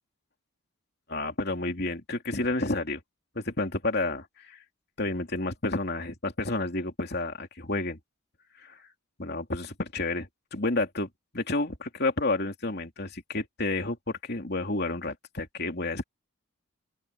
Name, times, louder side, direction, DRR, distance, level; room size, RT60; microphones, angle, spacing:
voice 1, 1.1-3.0 3.3-4.6 5.0-8.0 8.6-8.8 9.2-11.1 11.3-16.0, left 2 dB, 50° left, 3.1 m, -30 dB
open air
head